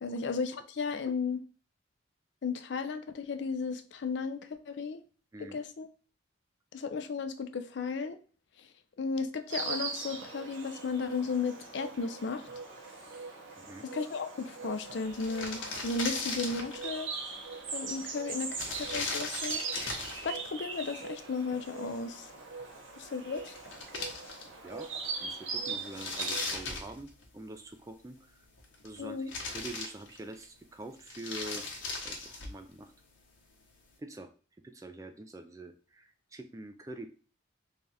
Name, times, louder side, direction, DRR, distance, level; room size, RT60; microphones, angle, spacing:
voice 1, 0.0-1.4 2.4-5.0 5.4-5.9 6.7-8.2 9.0-12.4 13.8-17.1 17.7-19.6 20.2-22.3 23.0-23.5 29.0-29.3, left 4 dB, 65° left, 10 dB, 0.4 m, -35 dB
Insect, 9.5-26.5, right 4 dB, 75° right, 0.8 m, -40 dB
sound 1, 14.8-14.9 15.0-16.9 18.5-20.3 23.0-23.1 23.3-24.7 25.0-25.1 25.7-27.5 28.4-29.0 29.3-30.4 31.0-32.6, left 3 dB, 80° left, 1.0 m, -38 dB
voice 2, 24.6-24.9 25.2-28.5 28.8-31.7 32.0-32.9 34.0-34.3 34.6-37.1, right 2 dB, 15° right, 7 dB, 0.3 m, -45 dB
3.3 x 2.4 x 4.1 m, 0.38 s
head